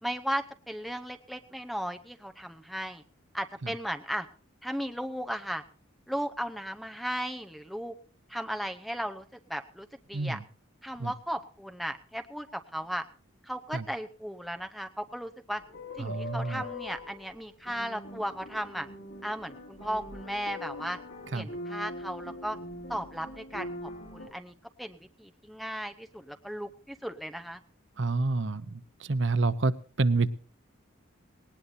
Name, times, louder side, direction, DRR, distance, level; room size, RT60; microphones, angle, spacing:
voice 1, 0.0-3.0 3.3-4.3 4.6-5.6 6.1-7.9 8.3-10.4 10.8-13.0 13.4-15.6 16.0-18.9 19.2-21.0 21.3-22.6 22.9-27.6, equal, ahead, 7 dB, 0.7 m, -36 dB
sound 1, 15.6-24.3, left 1 dB, 75° left, 7.4 m, -42 dB
voice 2, 16.0-16.6 21.3-21.5 28.0-28.6 29.1-29.7 30.0-30.3, right 3 dB, 65° right, 14 dB, 0.8 m, -27 dB
19.0 x 18.5 x 2.7 m, 0.42 s
head